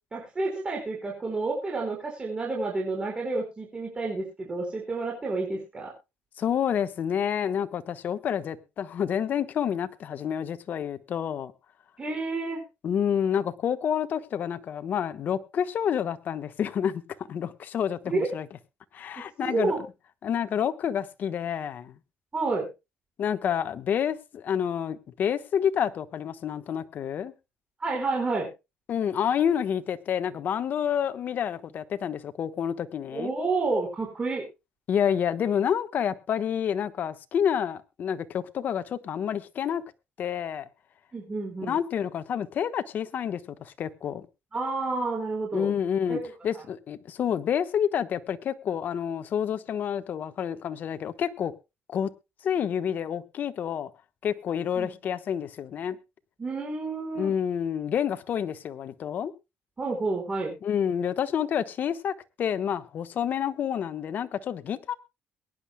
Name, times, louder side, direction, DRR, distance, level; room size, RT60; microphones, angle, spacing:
voice 1, 0.1-5.9 12.0-12.6 18.1-18.3 19.2-19.8 22.3-22.7 27.8-28.5 33.1-34.4 41.1-41.8 44.5-45.7 46.1-46.3 54.8-54.9 56.4-57.3 59.8-60.6, right 3 dB, 25° right, 4.7 m, -30 dB
voice 2, 6.4-11.5 12.8-17.0 17.3-18.5 18.9-19.7 20.2-22.0 23.2-27.3 28.9-33.3 34.9-39.8 40.2-40.7 41.6-44.3 45.5-51.5 51.9-52.1 52.4-53.9 54.2-56.0 57.2-59.3 60.6-64.9, left 8 dB, 55° left, 1.2 m, -28 dB
22.5 x 10.5 x 2.2 m
cardioid pair, 95°, 4 cm